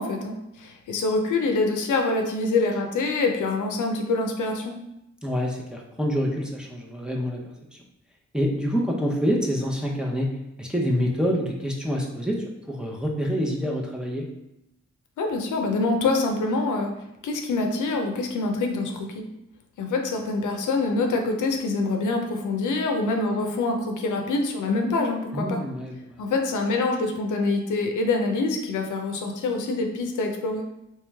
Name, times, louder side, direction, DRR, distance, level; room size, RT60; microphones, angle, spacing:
voice 1, 0.0-4.7 15.2-16.9 17.2-19.2 19.8-25.6 26.2-30.6, left 3 dB, 85° left, 3 dB, 0.6 m, -25 dB
voice 2, 5.2-7.4 8.3-10.3 10.6-14.3 25.3-26.2, equal, 5° right, -2 dB, 0.7 m, -26 dB
3.1 x 3.1 x 3.4 m, 0.87 s
cardioid pair, 75°, 30 cm